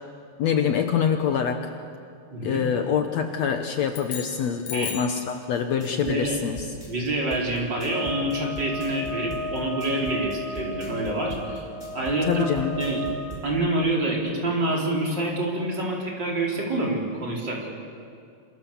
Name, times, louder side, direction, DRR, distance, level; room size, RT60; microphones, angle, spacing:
voice 1, 0.4-1.7 2.4-6.6 12.2-12.8, left 7 dB, 65° left, 6 dB, 2.1 m, -25 dB
voice 2, 2.3-2.6 4.7-4.9 5.9-6.4 6.9-11.6 11.9-12.5 12.8-13.0 13.4-17.7, right 1 dB, 35° right, -2 dB, 4.6 m, -27 dB
sound 1, 3.9-5.2, left 8 dB, 80° left, 3.7 m, -36 dB
sound 2, 5.5-13.4, right 1 dB, 15° left, 5.6 m, -40 dB
sound 3, 7.9-13.3, equal, 75° right, 8.9 m, -35 dB
27.5 x 27.5 x 7.2 m, 2.4 s
omnidirectional pair, 3.7 m